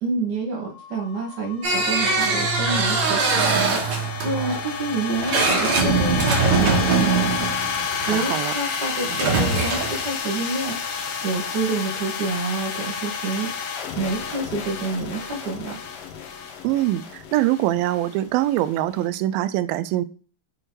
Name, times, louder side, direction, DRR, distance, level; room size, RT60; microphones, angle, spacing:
voice 1, 0.0-7.5 8.1-13.5 14.0-15.8, right 3 dB, 35° right, -1 dB, 1.8 m, -28 dB
sound 1, 0.7-19.0, left 6 dB, 80° left, 1.4 m, -31 dB
sound 2, 1.6-8.2 9.0-10.0, right 4 dB, 55° right, 2.9 m, -22 dB
voice 2, 8.0-8.5 16.6-20.1, right 14 dB, 90° right, 13 dB, 2.4 m, -23 dB
6.7 x 3.6 x 4.5 m, 0.38 s
omnidirectional pair, 4.1 m